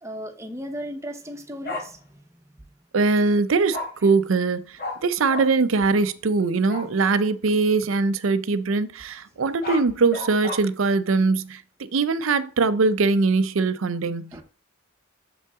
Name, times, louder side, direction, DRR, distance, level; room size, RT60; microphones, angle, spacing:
voice 1, 0.0-2.4 4.0-4.1 14.3-14.4, equal, 15° right, 0.9 m, -36 dB
Bark, 1.6-1.8 3.7-3.9 4.8-5.0 5.3-5.5 6.7-6.9 9.4-10.6, left 2 dB, 50° left, 2.0 m, -31 dB
voice 2, 2.9-14.4, right 4 dB, 75° right, 0.6 m, -22 dB
7.0 x 5.5 x 3.6 m
head